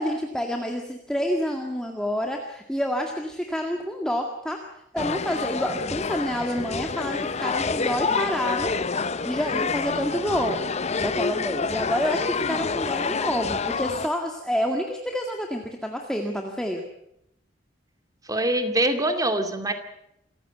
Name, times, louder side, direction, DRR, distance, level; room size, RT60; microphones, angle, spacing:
voice 1, 0.0-4.6 4.9-8.7 9.2-10.6 11.0-16.8, equal, 5° left, 2 dB, 1.9 m, -28 dB
sound 1, 5.0-14.1, left 4 dB, 35° left, 0.7 m, -28 dB
voice 2, 18.3-19.7, right 1 dB, 20° right, 7 dB, 2.4 m, -24 dB
27.0 x 15.0 x 8.0 m, 0.78 s
head